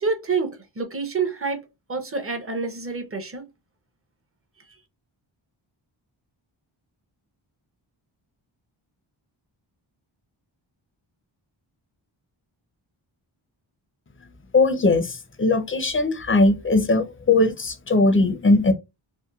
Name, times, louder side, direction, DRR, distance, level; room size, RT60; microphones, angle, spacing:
voice 1, 0.0-1.6 1.9-3.5, right 4 dB, 30° right, 0.6 m, -27 dB
voice 2, 14.5-18.7, left 2 dB, 25° left, 0.5 m, -19 dB
2.8 x 2.1 x 2.3 m
wide cardioid pair, 75°, 48 cm